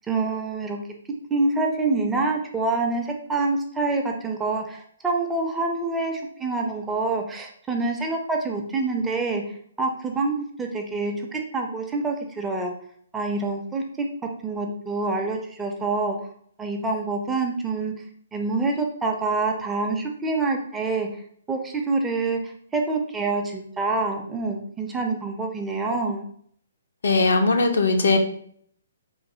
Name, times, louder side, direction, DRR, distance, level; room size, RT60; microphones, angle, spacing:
voice 1, 0.1-0.8 1.3-12.7 13.1-14.1 14.4-16.2 16.6-17.9 18.3-21.2 21.5-22.4 22.7-26.3, right 3 dB, 10° right, 2 dB, 0.4 m, -26 dB
voice 2, 27.0-28.2, left 3 dB, 65° left, 5 dB, 0.4 m, -19 dB
3.1 x 2.3 x 2.7 m, 0.62 s
figure-of-eight pair, 130°, 0 cm